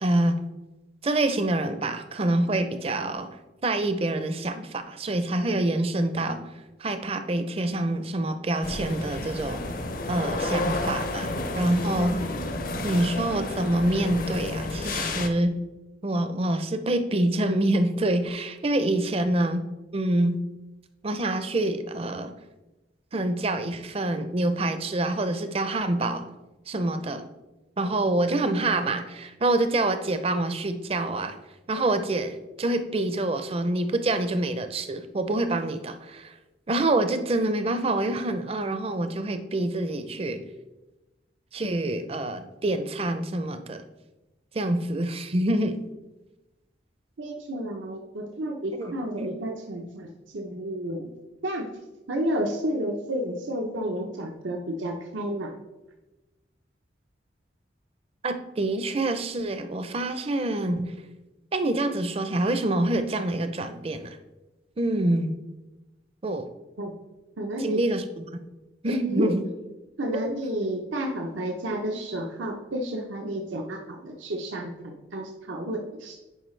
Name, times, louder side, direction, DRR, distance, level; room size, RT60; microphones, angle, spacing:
voice 1, 0.0-0.4 1.0-6.4 6.8-9.6 10.1-12.3 12.8-15.6 16.0-19.6 19.9-20.4 21.0-22.3 23.1-26.3 26.7-27.2 27.8-31.4 31.7-36.3 36.7-40.4 41.5-43.8 44.5-45.8 48.8-49.3 58.2-60.9 61.5-64.2 64.8-65.3 66.2-66.5 67.6-68.3 68.8-69.4 70.1-70.3, right 1 dB, 30° right, 10 dB, 0.5 m, -26 dB
sound 1, 8.6-15.3, left 2 dB, 45° left, 0.6 m, -31 dB
voice 2, 47.2-51.1 51.4-51.7 52.1-55.5 66.8-66.9 67.4-67.8 68.9-69.3 70.0-76.1, right 1 dB, 90° right, 2 dB, 0.8 m, -31 dB
10.0 x 4.8 x 3.2 m, 1.1 s
head